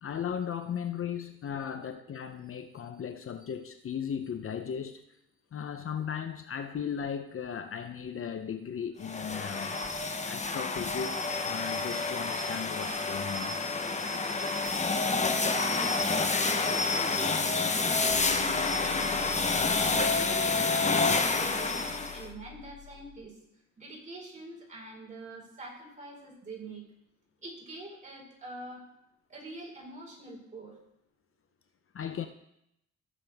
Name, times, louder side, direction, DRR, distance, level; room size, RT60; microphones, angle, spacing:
voice 1, 0.0-5.0 5.5-9.8 10.3-13.6 31.9-32.3, left 8 dB, 45° left, 7 dB, 0.8 m, -36 dB
sound 1, 9.0-22.3, left 3 dB, 25° left, 1.0 m, -29 dB
voice 2, 15.3-19.5 19.8-23.3 23.8-26.8 27.4-28.8 29.3-30.7, right 2 dB, 25° right, -3 dB, 4.8 m, -45 dB
sound 2, 18.1-23.2, left 8 dB, 80° left, 2.5 m, -46 dB
15.5 x 7.4 x 3.6 m, 0.79 s
cardioid pair, 90°, 30 cm